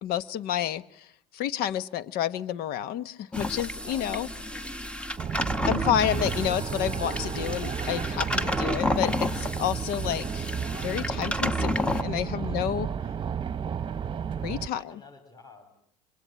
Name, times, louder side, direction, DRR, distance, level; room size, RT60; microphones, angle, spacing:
voice 1, 0.0-1.1 1.3-4.3 5.7-12.9 14.4-14.8, left 10 dB, 60° left, 15 dB, 1.3 m, -30 dB
sound 1, 3.3-12.0, left 1 dB, 5° left, 1.4 m, -31 dB
voice 2, 3.9-4.8 12.4-12.7 14.7-15.8, left 2 dB, 20° left, 4 dB, 8.0 m, -51 dB
sound 2, 5.2-14.7, right 7 dB, 30° right, 1.2 m, -32 dB
25.5 x 22.0 x 8.9 m, 0.66 s
supercardioid pair, 90°, 18 cm